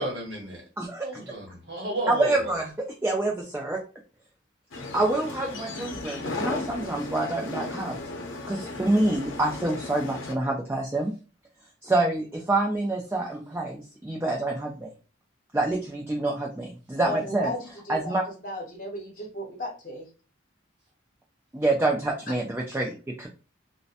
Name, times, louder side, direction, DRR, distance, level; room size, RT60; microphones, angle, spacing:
voice 1, 0.0-0.6 1.0-2.5, right 1 dB, 55° right, 0 dB, 0.9 m, -32 dB
voice 2, 0.8-1.1 2.1-2.7 3.0-3.8 4.9-8.0 8.5-11.1 11.8-14.9 15.5-17.5 17.9-18.2 21.5-23.3, right 2 dB, 10° right, -1 dB, 0.3 m, -27 dB
sound 1, 4.7-10.3, left 2 dB, 80° left, 0.6 m, -35 dB
voice 3, 17.0-20.1, left 1 dB, 45° left, 0 dB, 0.9 m, -35 dB
2.7 x 2.1 x 2.4 m, 0.34 s
head